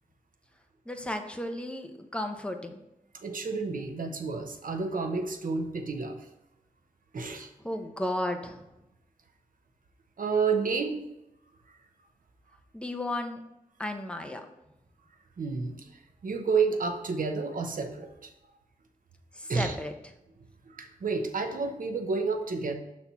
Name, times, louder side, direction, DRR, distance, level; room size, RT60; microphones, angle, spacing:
voice 1, 0.9-2.8 7.6-8.6 12.7-13.4 13.8-14.4 19.4-19.9, left 1 dB, 5° left, 5 dB, 0.7 m, -34 dB
voice 2, 3.1-6.2 7.1-7.5 10.2-11.0 15.4-18.3 19.5-19.8 20.7-22.7, right 4 dB, 70° right, 6 dB, 0.9 m, -30 dB
5.9 x 4.3 x 5.5 m, 0.89 s
wide cardioid pair, 105°, 15 cm